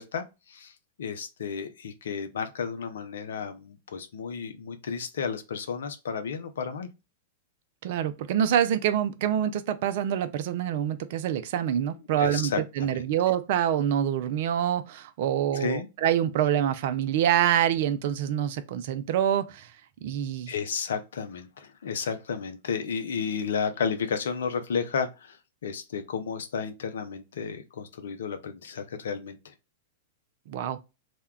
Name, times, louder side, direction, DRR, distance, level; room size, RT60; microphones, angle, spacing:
voice 1, 0.0-6.9 12.2-13.0 15.5-15.9 20.5-29.5, left 6 dB, 75° left, 0.5 m, -32 dB
voice 2, 7.8-19.7 20.0-20.5 30.5-30.8, right 10 dB, 60° right, 0.4 m, -26 dB
2.2 x 2.1 x 3.4 m
hypercardioid pair, 105°, 0 cm